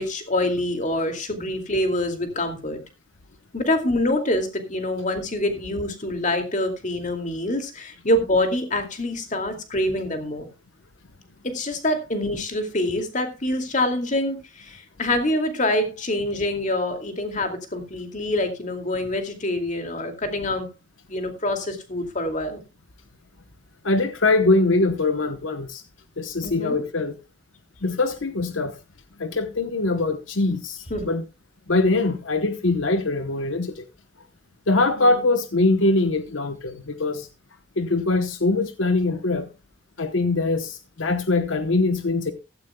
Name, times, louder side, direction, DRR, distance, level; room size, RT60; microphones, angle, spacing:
voice 1, 0.0-2.8 3.5-10.5 11.4-20.7 21.1-22.6 26.4-26.8 30.9-31.1 35.0-35.2, left 1 dB, 40° left, 2.4 m, -25 dB
voice 2, 23.8-25.8 26.2-27.2 27.8-28.8 29.2-31.2 31.7-33.9 34.7-37.3 37.8-39.5 40.0-42.3, left 2 dB, 85° left, 1.0 m, -22 dB
15.5 x 13.5 x 2.3 m
head